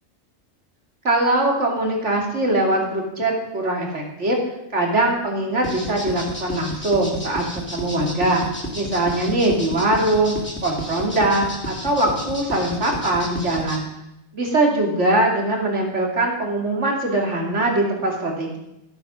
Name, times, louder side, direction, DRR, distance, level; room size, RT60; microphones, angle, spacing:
voice 1, 1.0-4.4 4.7-8.4 8.7-10.3 10.6-13.9 14.3-18.6, right 2 dB, 60° right, 0 dB, 2.9 m, -21 dB
sound 1, 5.6-13.8, left 1 dB, 10° left, 2.5 m, -32 dB
12.5 x 8.6 x 6.2 m, 0.89 s
omnidirectional pair, 1.3 m